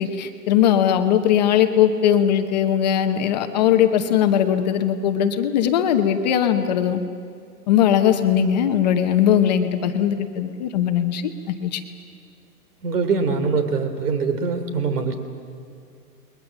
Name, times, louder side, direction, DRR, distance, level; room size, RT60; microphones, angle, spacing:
voice 1, 0.0-7.0 7.7-11.8, left 9 dB, 25° left, 6 dB, 0.8 m, -19 dB
voice 2, 12.8-15.1, right 5 dB, 70° right, 8 dB, 3.5 m, -23 dB
29.0 x 21.5 x 7.2 m, 2.4 s
hypercardioid pair, 160°, 48 cm